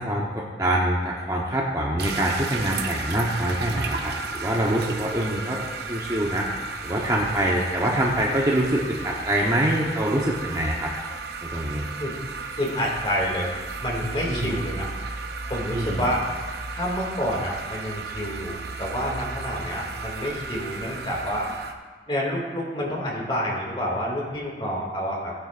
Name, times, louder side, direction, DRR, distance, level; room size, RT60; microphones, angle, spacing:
voice 1, 0.0-5.6 5.9-6.5 6.8-10.9 11.4-11.9 14.3-14.6 15.7-16.1, right 1 dB, 20° right, -3 dB, 1.0 m, -25 dB
sound 1, 2.0-21.7, right 4 dB, 60° right, 0.8 m, -34 dB
voice 2, 12.6-13.5 13.8-14.9 15.5-16.2 16.7-21.5 22.1-25.3, equal, 30° left, -3 dB, 2.5 m, -28 dB
18.0 x 9.6 x 2.6 m, 1.4 s
head